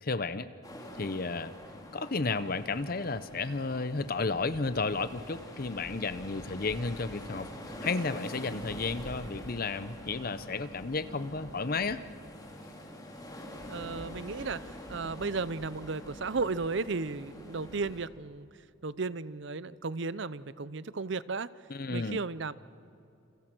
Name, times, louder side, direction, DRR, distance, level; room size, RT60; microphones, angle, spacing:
voice 1, 0.0-0.5 0.9-1.5 1.9-7.5 7.8-12.0 21.7-22.2, left 3 dB, 45° left, 13 dB, 0.7 m, -32 dB
sound 1, 0.6-18.0, equal, 15° left, 3.0 m, -45 dB
voice 2, 13.7-18.5 18.8-21.5 21.9-22.5, right 4 dB, 55° right, 18 dB, 0.6 m, -34 dB
29.0 x 29.0 x 6.1 m, 2.7 s
head